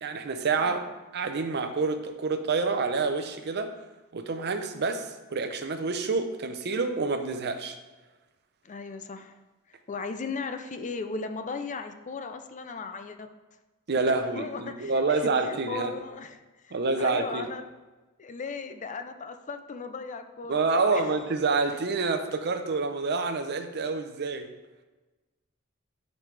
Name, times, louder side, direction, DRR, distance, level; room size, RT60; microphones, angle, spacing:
voice 1, 0.0-0.8 1.1-3.7 4.1-7.8 13.9-15.9 16.7-17.5 20.5-24.5, right 4 dB, 50° right, 7 dB, 0.7 m, -28 dB
voice 2, 8.6-9.4 9.7-13.3 14.1-17.7 18.2-21.1, left 4 dB, 35° left, 8 dB, 0.5 m, -37 dB
10.5 x 5.3 x 3.3 m, 1.2 s
head